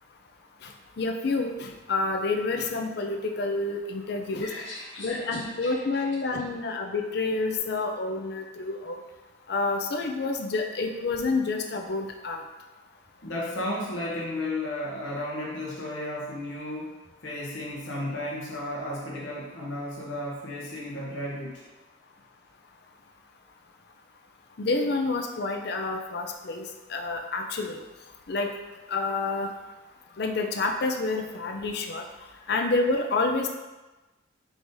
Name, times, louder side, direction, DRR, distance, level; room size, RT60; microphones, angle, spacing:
voice 1, 0.6-4.5 5.0-9.0 9.5-12.4 24.6-27.8 28.3-28.5 28.9-29.5 30.2-32.1 32.5-33.5, left 3 dB, 55° left, 4 dB, 0.4 m, -28 dB
voice 2, 4.4-6.0 13.2-17.0 17.2-21.6, left 1 dB, 70° left, -5 dB, 0.9 m, -34 dB
4.7 x 2.6 x 3.7 m, 1.1 s
head